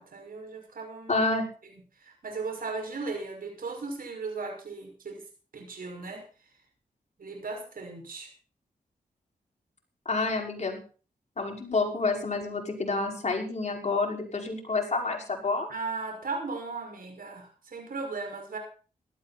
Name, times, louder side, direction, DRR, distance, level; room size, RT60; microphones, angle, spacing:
voice 1, 0.0-1.3 2.0-5.2 5.5-6.2 7.2-8.3 15.7-18.6, right 4 dB, 65° right, 3 dB, 5.9 m, -37 dB
voice 2, 1.1-1.4 10.1-10.8 11.4-15.7, left 3 dB, 45° left, 1 dB, 5.4 m, -28 dB
17.5 x 12.5 x 4.3 m, 0.38 s
cardioid pair, 50°, 16 cm